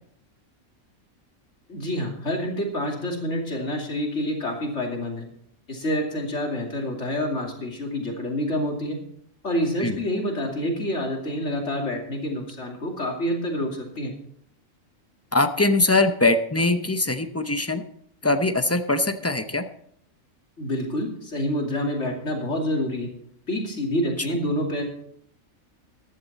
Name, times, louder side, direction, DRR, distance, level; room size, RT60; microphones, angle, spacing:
voice 1, 1.7-5.3 5.7-9.0 9.4-14.1 20.6-23.1 23.5-24.8, left 1 dB, 55° left, 0 dB, 3.0 m, -27 dB
voice 2, 15.3-17.8 18.2-19.6, left 2 dB, 15° left, 8 dB, 0.5 m, -22 dB
14.5 x 11.5 x 4.2 m, 0.68 s
omnidirectional pair, 1.4 m